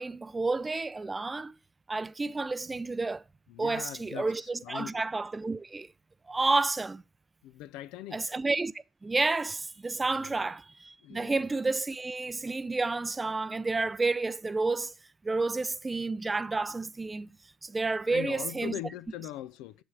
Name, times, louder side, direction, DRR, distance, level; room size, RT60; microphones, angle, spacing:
voice 1, 0.0-1.6 1.9-3.2 3.6-5.9 6.3-7.0 8.1-14.9 15.2-17.3 17.6-18.7, right 3 dB, 20° right, 0.5 m, -30 dB
voice 2, 3.5-5.0 7.4-8.3 10.1-10.4 11.0-11.4 18.1-19.8, left 13 dB, 75° left, 0.5 m, -41 dB
7.1 x 5.6 x 4.6 m
supercardioid pair, 70°, 0 cm